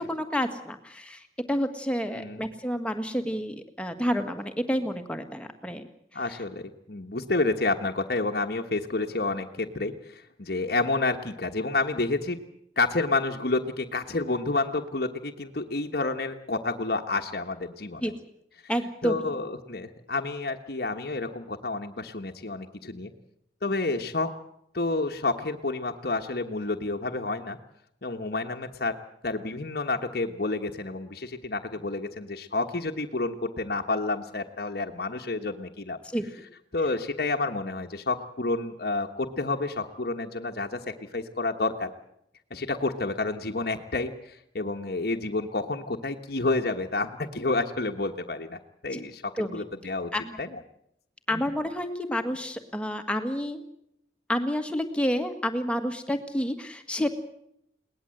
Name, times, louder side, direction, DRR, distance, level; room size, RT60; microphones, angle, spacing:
voice 1, 0.1-5.8 18.0-18.1 18.7-19.3 36.1-36.2 48.9-49.0 49.4-49.6 50.1-50.4 51.3-53.6 54.3-57.2, equal, 5° left, 6 dB, 1.8 m, -29 dB
voice 2, 2.1-2.4 6.1-12.4 12.8-18.1 19.0-23.1 23.6-24.3 24.7-27.6 28.0-28.9 29.2-36.0 36.7-41.9 42.5-50.1 50.4-50.6 51.3-51.4, left 3 dB, 60° left, 4 dB, 1.3 m, -29 dB
22.0 x 18.5 x 7.8 m, 0.74 s
head